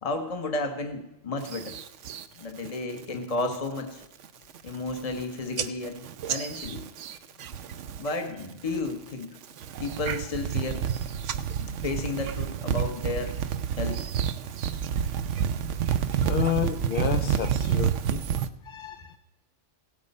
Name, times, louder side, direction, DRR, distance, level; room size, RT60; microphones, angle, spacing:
voice 1, 0.0-1.8 2.4-4.0 4.6-6.8 8.0-9.4 9.8-10.9 11.6-13.4 13.8-14.0 16.2-16.3, left 2 dB, 30° left, 5 dB, 1.1 m, -32 dB
sound 1, 1.4-2.3 2.7-3.0 3.4-3.8 4.2-4.3 4.6-5.2 5.6-8.1 8.4-8.9 9.4-18.5, right 9 dB, 90° right, 1.0 m, -29 dB
voice 2, 16.3-18.2 18.7-19.2, left 9 dB, 55° left, 7 dB, 0.7 m, -30 dB
16.5 x 8.8 x 5.4 m, 0.93 s
omnidirectional pair, 1.2 m